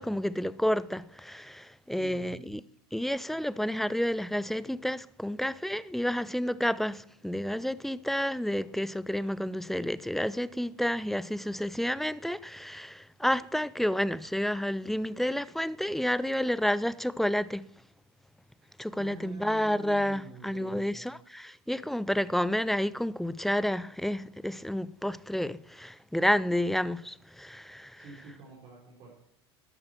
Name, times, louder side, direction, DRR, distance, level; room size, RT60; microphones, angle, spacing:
voice 1, 0.0-2.6 2.9-17.7 18.8-28.0, equal, ahead, 0.4 m, -30 dB
voice 2, 1.9-2.5 18.9-21.1 27.9-29.1, right 3 dB, 45° right, 3.9 m, -47 dB
13.0 x 12.0 x 4.5 m
hypercardioid pair, 85°, 13 cm